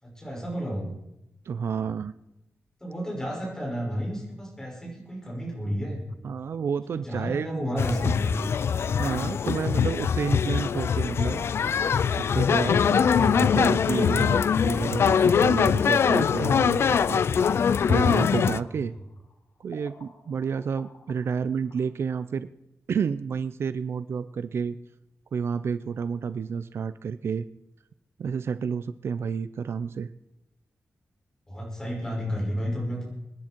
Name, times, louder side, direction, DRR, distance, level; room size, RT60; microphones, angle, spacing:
voice 1, 0.0-0.9 2.8-6.0 6.9-8.4 12.8-13.4 18.6-18.7 31.5-33.1, equal, 10° left, -2 dB, 5.9 m, -31 dB
voice 2, 1.5-2.1 6.2-7.7 8.8-11.4 12.2-17.2 17.5-18.9 19.6-22.5 22.9-24.8 25.3-27.5 28.2-30.1, right 6 dB, 60° right, 14 dB, 0.5 m, -30 dB
sound 1, 7.8-18.6, left 7 dB, 60° left, 0.4 m, -23 dB
sound 2, 13.3-21.9, left 3 dB, 90° left, 4.8 m, -47 dB
24.5 x 10.0 x 4.5 m, 0.89 s
wide cardioid pair, 175°, 5 cm